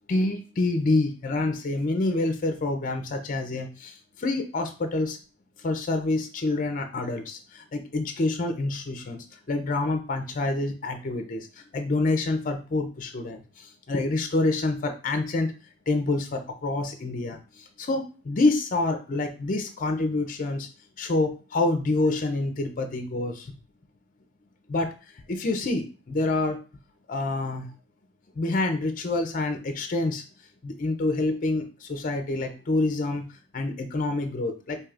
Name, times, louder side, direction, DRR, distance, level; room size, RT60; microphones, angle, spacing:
voice 1, 0.1-5.2 5.6-15.5 15.9-20.7 21.0-23.5 24.7-24.9 25.3-26.6 27.1-27.7 28.4-30.2 30.6-34.8, left 2 dB, 40° left, 6 dB, 0.5 m, -27 dB
4.6 x 2.7 x 2.4 m, 0.35 s
head